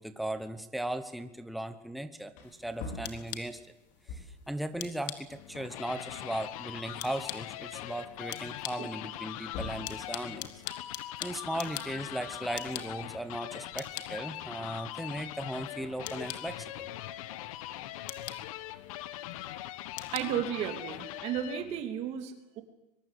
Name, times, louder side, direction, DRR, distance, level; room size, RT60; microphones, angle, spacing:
voice 1, 0.0-2.3 2.6-3.6 4.1-4.2 4.5-10.5 11.2-16.9, right 1 dB, ahead, 9 dB, 1.0 m, -37 dB
Wood, 2.3-4.5 5.6-5.7 6.1-7.3 7.8-7.9 9.1-10.0 12.0-13.0, left 3 dB, 40° left, 4.8 m, -45 dB
sound 1, 2.4-21.2, left 11 dB, 85° left, 2.7 m, -47 dB
sound 2, 5.3-21.8, left 14 dB, 55° left, 1.3 m, -42 dB
voice 2, 20.1-22.6, right 10 dB, 30° right, 7 dB, 3.0 m, -34 dB
23.5 x 22.5 x 8.4 m, 0.93 s
supercardioid pair, 175°, 21 cm